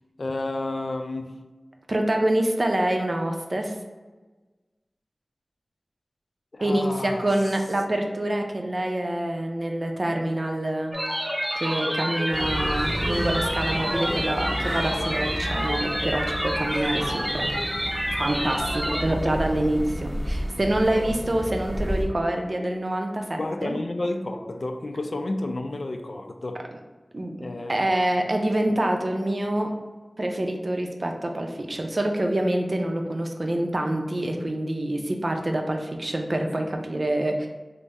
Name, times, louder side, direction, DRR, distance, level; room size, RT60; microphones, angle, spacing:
voice 1, 0.2-1.4 6.5-7.3 19.1-19.6 23.4-26.6 27.4-27.8, left 2 dB, 65° left, 5 dB, 0.4 m, -31 dB
voice 2, 1.9-3.7 6.6-11.0 11.5-17.5 18.2-23.7 27.1-27.4 27.7-29.7 30.2-37.5, right 1 dB, 50° right, 3 dB, 0.5 m, -26 dB
sound 1, 10.9-19.0, equal, 25° right, 1.0 m, -28 dB
sound 2, 12.3-22.0, equal, 20° left, 1.0 m, -32 dB
3.5 x 2.0 x 4.1 m, 1.3 s
wide cardioid pair, 60°, 0 cm